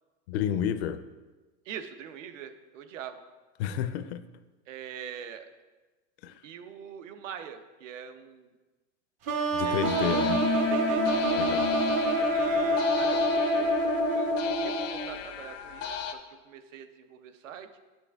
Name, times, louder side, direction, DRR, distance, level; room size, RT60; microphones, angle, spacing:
voice 1, 0.3-1.0 3.6-4.2 6.2-6.3 9.5-10.4 11.4-11.7, left 9 dB, 60° left, 12 dB, 0.5 m, -30 dB
voice 2, 1.6-3.2 4.7-5.5 6.4-8.5 9.6-10.2 10.7-11.4 12.3-17.7, right 8 dB, 90° right, 9 dB, 0.8 m, -43 dB
sound 1, 9.3-15.1, right 1 dB, 20° right, 0.4 m, -26 dB
sound 2, 9.8-16.1, left 6 dB, 90° left, 0.8 m, -33 dB
8.5 x 6.1 x 3.4 m, 1.2 s
supercardioid pair, 160°, 37 cm